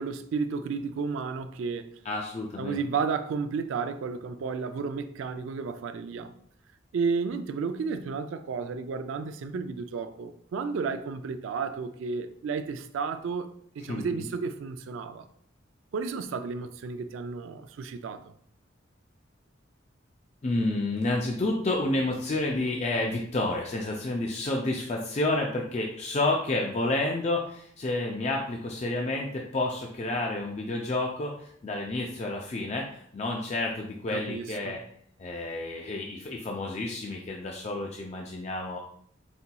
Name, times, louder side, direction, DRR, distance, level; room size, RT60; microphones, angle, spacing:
voice 1, 0.0-2.0 2.6-6.3 6.9-13.5 13.8-15.3 15.9-18.3 34.1-34.8, right 5 dB, 85° right, 0.3 m, -32 dB
voice 2, 2.0-2.8 13.9-14.3 20.4-34.8 35.2-38.8, left 2 dB, 35° left, 0.4 m, -30 dB
4.2 x 3.9 x 2.2 m
head